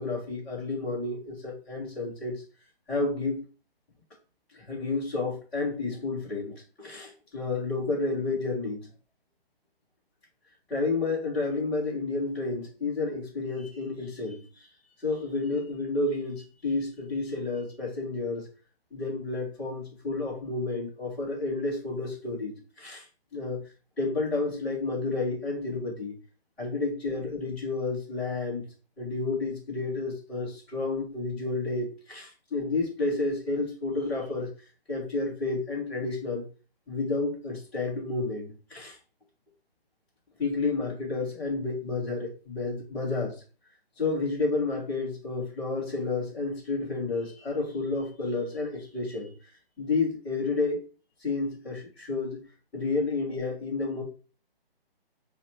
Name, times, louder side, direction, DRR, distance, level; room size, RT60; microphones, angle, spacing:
voice 1, 0.0-2.4 2.9-3.4 4.5-8.9 10.7-14.7 15.0-18.5 18.9-23.0 23.3-23.6 24.0-26.1 26.6-28.7 29.0-34.5 34.9-36.4 36.9-39.0 40.4-43.4 44.0-49.3 49.8-50.8 51.2-52.4 52.7-54.0, left 3 dB, 5° left, 0.5 m, -30 dB
5.5 x 2.1 x 3.0 m
hypercardioid pair, 155°, 30 cm